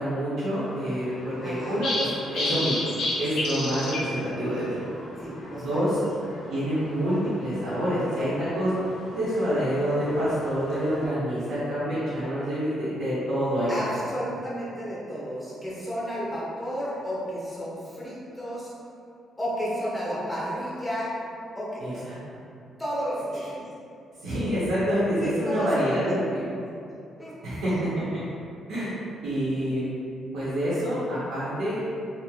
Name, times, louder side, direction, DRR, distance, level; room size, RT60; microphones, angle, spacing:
voice 1, 0.0-2.8 3.1-4.8 5.5-6.0 6.5-8.7 9.1-13.9 21.8-22.2 24.2-26.4 27.4-28.2 28.7-29.0 29.2-29.8 30.3-31.8, equal, 90° right, -11 dB, 0.8 m, -27 dB
sound 1, 0.5-11.0, left 1 dB, 75° left, 0.5 m, -35 dB
voice 2, 1.4-1.8 5.2-5.8 13.7-18.7 19.4-21.1 21.5-22.0 22.8-23.5 25.2-26.1 26.5-26.6 27.2-27.3 27.7-27.8, equal, 15° left, -8 dB, 1.1 m, -32 dB
3.1 x 2.5 x 2.2 m, 2.5 s
cardioid pair, 90°, 0 cm